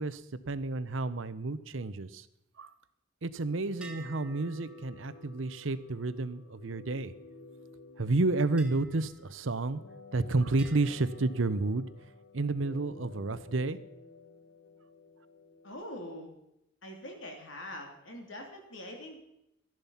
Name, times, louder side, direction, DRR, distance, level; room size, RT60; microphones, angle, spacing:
voice 1, 0.0-2.3 2.6-2.7 3.2-7.1 8.0-9.8 10.1-11.9 12.3-13.8, right 2 dB, 80° right, 13 dB, 0.8 m, -31 dB
sound 1, 3.7-15.7, left 3 dB, 55° left, 1.3 m, -53 dB
sound 2, 3.8-7.5 8.6-10.1 10.6-12.3, right 3 dB, 5° right, 1.4 m, -55 dB
voice 2, 15.6-16.3 16.8-19.2, left 1 dB, 75° left, 2 dB, 3.2 m, -43 dB
14.0 x 10.5 x 5.7 m, 0.83 s
head